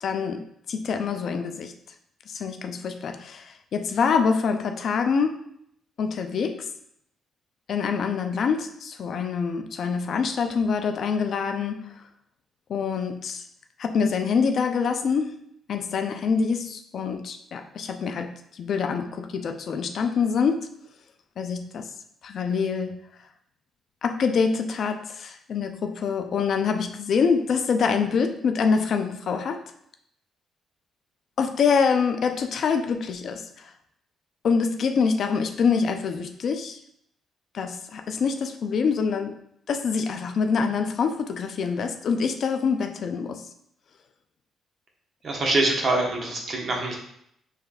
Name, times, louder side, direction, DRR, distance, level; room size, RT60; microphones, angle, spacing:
voice 1, 0.0-1.7 2.3-5.5 6.0-6.7 7.7-11.9 12.7-13.4 13.8-15.4 15.7-20.7 21.4-21.9 22.2-23.0 24.0-29.6 31.4-33.7 34.4-36.8 37.5-39.4 39.7-43.4, left 5 dB, 60° left, 6 dB, 0.4 m, -25 dB
voice 2, 45.2-46.9, right 2 dB, 50° right, 0 dB, 1.1 m, -24 dB
5.6 x 3.3 x 2.4 m, 0.71 s
cardioid pair, 90°, 0 cm